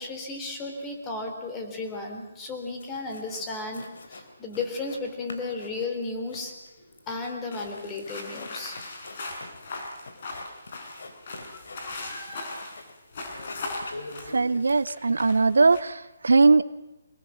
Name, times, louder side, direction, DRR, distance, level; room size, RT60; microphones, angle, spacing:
voice 1, 0.0-6.5 7.1-8.7 11.5-12.4, left 3 dB, 15° left, 4 dB, 4.0 m, -34 dB
sound 1, 2.5-2.6 2.8-3.5 3.7-5.0 5.3-13.0 13.3-14.6, left 2 dB, 70° left, 3.5 m, -45 dB
sound 2, 7.5-15.8, left 3 dB, 50° left, 5.8 m, -39 dB
voice 2, 14.3-16.6, right 3 dB, 80° right, 18 dB, 0.7 m, -20 dB
24.0 x 21.0 x 7.3 m, 1.0 s
hypercardioid pair, 150°, 0 cm